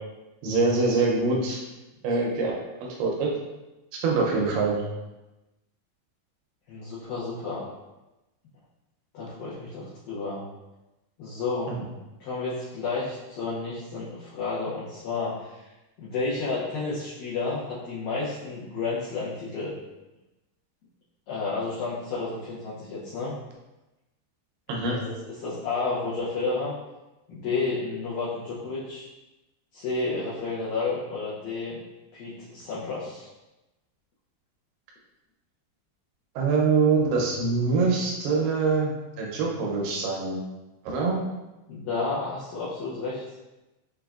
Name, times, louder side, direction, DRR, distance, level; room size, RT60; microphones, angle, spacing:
voice 1, 0.4-1.6 2.0-2.5 2.8-3.3 4.0-4.8 24.7-24.9 36.4-38.9 39.2-40.4 40.9-41.2, right 4 dB, 80° right, -2 dB, 2.4 m, -24 dB
voice 2, 6.7-7.7 9.1-10.5 11.2-11.8 12.2-15.6 16.0-19.8 21.3-23.3 24.9-26.7 27.3-29.1 29.7-31.8 32.1-33.3 41.7-43.2, left 3 dB, 80° left, -8 dB, 2.0 m, -31 dB
6.5 x 2.2 x 2.3 m, 1.0 s
omnidirectional pair, 4.9 m